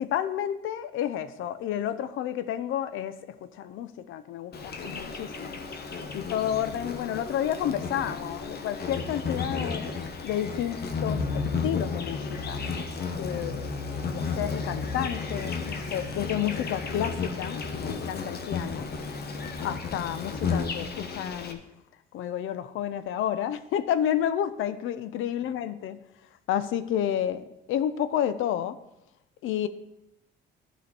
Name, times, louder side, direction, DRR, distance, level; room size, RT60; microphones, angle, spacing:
voice 1, 0.0-5.7 6.1-9.9 10.2-12.6 13.1-13.7 14.1-18.9 19.6-21.6 22.1-26.0 26.5-28.8 29.4-29.7, left 10 dB, 85° left, 13 dB, 0.6 m, -30 dB
Insect, 4.5-21.5, left 4 dB, 55° left, 1.0 m, -33 dB
11.5 x 5.1 x 4.2 m, 0.87 s
cardioid pair, 90°, 20 cm